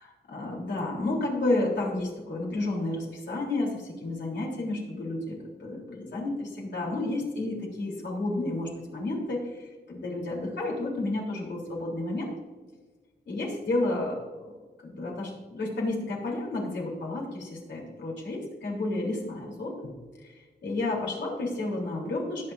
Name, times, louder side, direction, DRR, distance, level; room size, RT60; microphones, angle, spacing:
voice 1, 0.0-12.3 13.3-14.5 14.8-19.9 20.2-22.5, left 2 dB, 85° left, -2 dB, 3.6 m, -31 dB
20.5 x 7.3 x 2.7 m, 1.4 s
wide cardioid pair, 100°, 18 cm